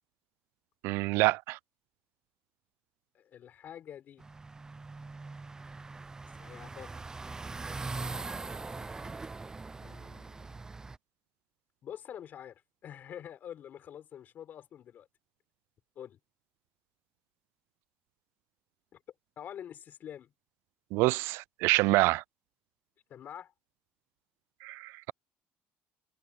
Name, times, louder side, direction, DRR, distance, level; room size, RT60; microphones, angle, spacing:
voice 1, 0.8-1.6 20.9-22.2 24.6-25.1, right 22 dB, 80° right, 0.3 m, -27 dB
voice 2, 3.1-4.2 6.4-6.9 9.8-10.6 11.8-15.1 16.0-16.2 18.9-19.0 19.4-20.3 23.1-23.5, left 10 dB, 50° left, 4.2 m, -46 dB
sound 1, 4.2-11.0, right 3 dB, 15° right, 0.5 m, -41 dB
cardioid pair, 125°, 4 cm